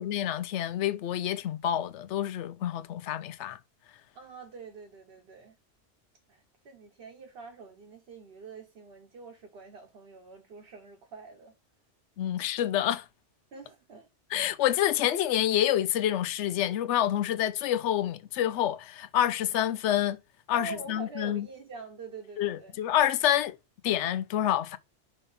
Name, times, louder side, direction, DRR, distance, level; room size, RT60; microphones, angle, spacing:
voice 1, 0.0-3.6 12.2-13.0 14.3-20.2 20.5-21.4 22.4-23.6 23.8-24.8, left 11 dB, 80° left, 0.9 m, -27 dB
voice 2, 4.1-5.5 6.3-11.5 13.5-14.1 20.5-22.8, right 4 dB, 60° right, 1.1 m, -45 dB
5.5 x 3.6 x 5.5 m
omnidirectional pair, 1.2 m